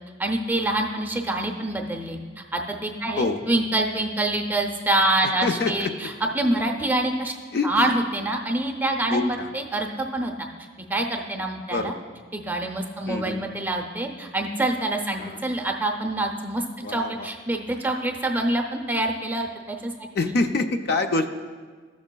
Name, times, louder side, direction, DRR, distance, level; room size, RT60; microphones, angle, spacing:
voice 1, 0.2-7.3 7.6-10.5 10.9-11.9 12.3-20.4, right 1 dB, 10° right, 2 dB, 0.5 m, -26 dB
voice 2, 5.4-5.9 7.5-8.0 9.1-9.5 11.7-11.9 13.1-13.4 15.2-15.4 16.8-17.3 20.1-21.3, left 3 dB, 55° left, 6 dB, 0.4 m, -25 dB
14.0 x 6.1 x 2.2 m, 1.5 s
head